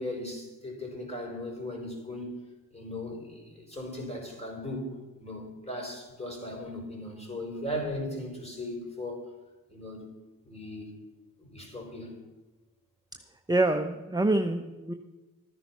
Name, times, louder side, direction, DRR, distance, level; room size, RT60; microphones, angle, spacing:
voice 1, 0.0-2.4 2.7-4.9 5.2-9.2 9.7-10.0 10.4-10.9 11.4-12.2, left 1 dB, 20° left, 0 dB, 5.2 m, -37 dB
voice 2, 13.5-14.9, right 2 dB, 10° right, 6 dB, 0.9 m, -26 dB
14.0 x 9.8 x 5.9 m, 1.1 s
cardioid pair, 60°, 35 cm